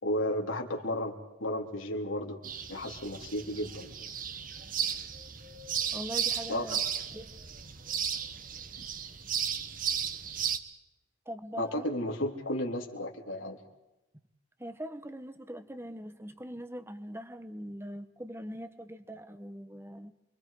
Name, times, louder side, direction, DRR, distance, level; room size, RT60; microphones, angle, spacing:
voice 1, 0.0-3.9 6.5-6.8 11.6-13.6, left 1 dB, 85° left, 2 dB, 3.5 m, -33 dB
sound 1, 2.4-10.6, right 8 dB, 45° right, 1.5 m, -35 dB
voice 2, 5.9-6.8 7.1-7.3 11.2-11.8 14.6-20.1, equal, 15° right, 10 dB, 1.4 m, -42 dB
28.5 x 24.5 x 5.1 m, 0.96 s
head